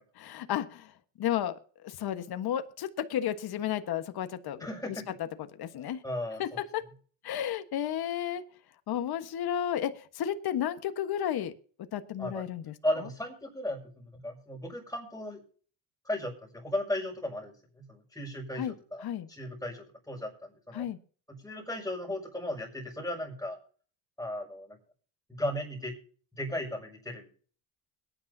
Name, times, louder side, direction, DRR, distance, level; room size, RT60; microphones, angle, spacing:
voice 1, 0.2-0.9 1.2-1.6 1.8-4.7 5.6-6.0 6.4-6.8 7.2-8.4 8.9-11.5 11.9-12.7 18.6-18.7 19.0-19.3 20.7-21.0, left 10 dB, 55° left, 9 dB, 1.5 m, -32 dB
voice 2, 4.6-5.1 5.7-6.6 12.2-12.5 12.8-15.4 16.0-20.9 21.3-23.6 24.2-24.8 25.3-25.9 26.3-27.3, left 1 dB, 5° left, -6 dB, 6.2 m, -36 dB
22.0 x 10.5 x 2.8 m, 0.43 s
cardioid pair, 95°, 46 cm